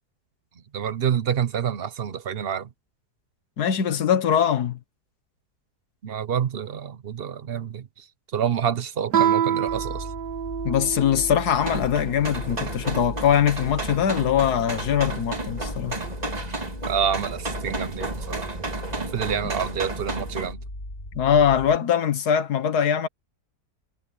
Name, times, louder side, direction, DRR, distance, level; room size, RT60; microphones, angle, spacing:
voice 1, 0.7-2.7 6.0-8.0 8.3-10.1 16.9-18.5 19.1-20.6, right 8 dB, 45° right, 0.9 m, -27 dB
voice 2, 3.6-4.8 10.6-16.0 21.2-23.1, left 8 dB, 70° left, 1.8 m, -22 dB
Guitar, 9.1-11.6, right 9 dB, 85° right, 2.0 m, -25 dB
sound 1, 9.7-21.8, left 1 dB, 35° left, 6.7 m, -37 dB
sound 2, 11.6-20.5, right 2 dB, 25° right, 2.2 m, -33 dB
omnidirectional pair, 1.8 m